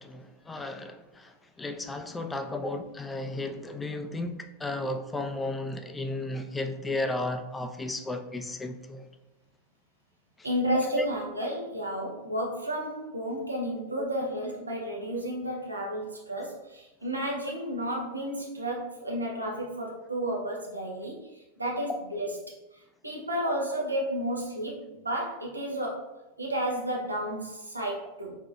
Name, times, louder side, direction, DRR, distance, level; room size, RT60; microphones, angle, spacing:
voice 1, 0.0-9.0 10.9-11.1 21.9-22.0 23.5-23.6, left 2 dB, 10° left, 0.4 m, -34 dB
voice 2, 10.4-22.4 23.0-26.1 26.4-28.4, equal, 80° right, 1.0 m, -32 dB
4.6 x 3.7 x 2.5 m
figure-of-eight pair, 90°, 0 cm